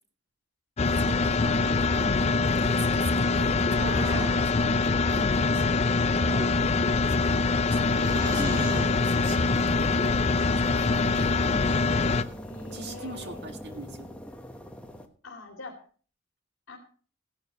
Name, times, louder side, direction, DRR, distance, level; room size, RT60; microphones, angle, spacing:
sound 1, 0.8-12.2, left 3 dB, 30° left, 0.5 m, -24 dB
voice 1, 0.8-4.8 5.1-5.8 7.0-10.3 10.6-11.6 12.7-14.1, right 2 dB, 55° right, 4 dB, 1.9 m, -41 dB
sound 2, 3.7-4.6 6.1-6.8 8.0-8.9 10.2-10.6 11.5-12.3, right 1 dB, 20° right, 1.6 m, -39 dB
sound 3, 5.8-15.1, equal, 5° left, 1.1 m, -42 dB
voice 2, 12.3-13.5 15.2-15.7 16.7-16.8, left 2 dB, 75° left, -1 dB, 2.7 m, -44 dB
15.5 x 11.5 x 3.0 m, 0.41 s
head